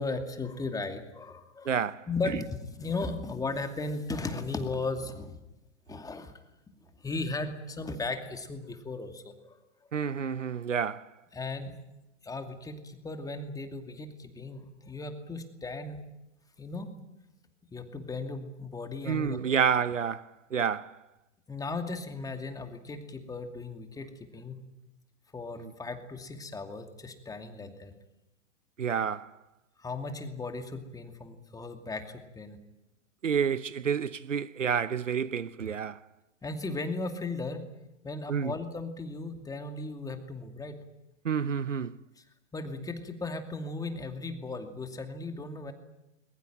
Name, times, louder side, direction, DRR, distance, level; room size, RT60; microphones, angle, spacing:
voice 1, 0.0-1.8 2.1-5.4 5.9-6.3 6.7-9.6 11.3-11.7 12.2-16.0 16.6-16.9 17.7-19.4 21.5-24.6 25.3-27.9 29.8-32.6 36.4-37.6 38.0-40.8 42.2-42.3 42.5-45.7, left 3 dB, 10° left, 2.5 m, -36 dB
voice 2, 1.7-2.1 9.9-11.1 19.1-21.0 25.6-25.7 28.8-29.3 33.2-36.0 38.3-38.5 41.2-42.0, right 7 dB, 85° right, 0.9 m, -29 dB
21.5 x 21.0 x 9.1 m
figure-of-eight pair, 110°, 37 cm